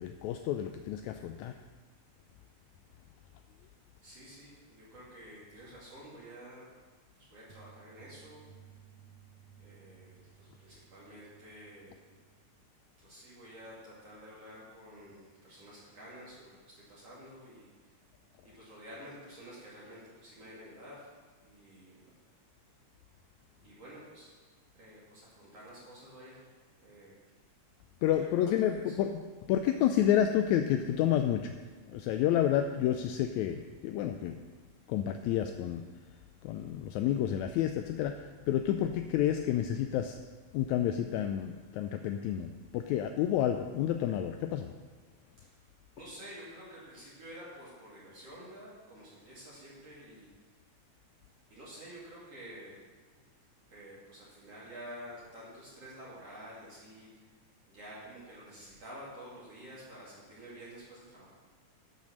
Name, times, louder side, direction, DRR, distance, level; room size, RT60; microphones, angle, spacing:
voice 1, 0.0-1.6 28.0-29.2 29.5-31.6 31.9-34.4 34.9-35.8 36.4-40.2 40.5-44.7, left 10 dB, 80° left, 6 dB, 1.7 m, -30 dB
voice 2, 4.0-6.7 7.1-8.4 9.6-12.0 13.0-17.9 18.4-21.1 21.4-22.0 23.6-24.3 24.7-26.5 26.8-27.2 28.2-29.2 46.0-50.3 51.5-52.8 53.1-53.3 53.7-57.3 57.7-61.3, equal, 50° right, -8 dB, 3.4 m, -50 dB
sound 1, 7.5-12.5, right 9 dB, 70° right, 1.5 m, -58 dB
12.0 x 6.4 x 6.3 m, 1.4 s
omnidirectional pair, 3.6 m